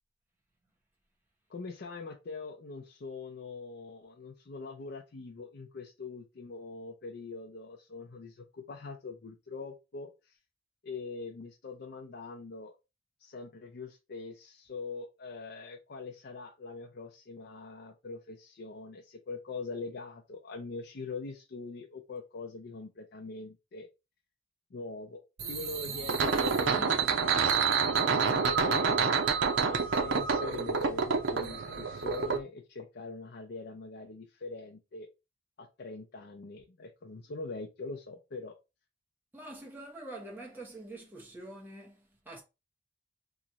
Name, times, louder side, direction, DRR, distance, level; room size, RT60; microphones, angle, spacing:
voice 1, 1.5-10.4 10.8-12.7 13.2-23.9 24.7-25.2 25.5-29.1 29.7-35.1 35.6-38.5, left 3 dB, 60° left, 0.5 m, -43 dB
sound 1, 25.4-32.4, right 5 dB, 75° right, 0.7 m, -28 dB
voice 2, 39.3-42.4, right 1 dB, 10° right, 1.0 m, -45 dB
3.0 x 2.4 x 3.9 m
head